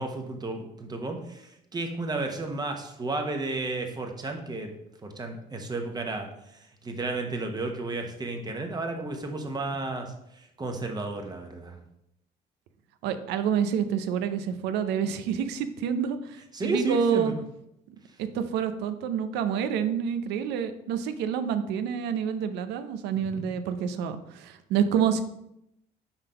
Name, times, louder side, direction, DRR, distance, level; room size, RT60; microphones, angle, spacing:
voice 1, 0.0-4.7 5.0-11.8 16.5-17.3 23.1-23.5, right 2 dB, 25° right, 4 dB, 1.0 m, -33 dB
voice 2, 13.0-17.3 18.3-25.2, right 8 dB, 90° right, 10 dB, 0.6 m, -28 dB
5.8 x 3.6 x 5.6 m, 0.81 s
cardioid pair, 110°, 17 cm